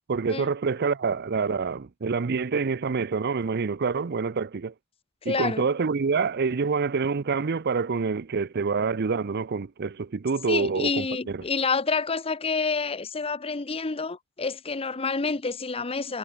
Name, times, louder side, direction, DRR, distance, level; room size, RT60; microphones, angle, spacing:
voice 1, 0.1-4.7 5.3-11.4, right 5 dB, 45° right, 0.5 m, -27 dB
voice 2, 5.2-5.7 10.5-16.2, left 4 dB, 25° left, 0.7 m, -28 dB
head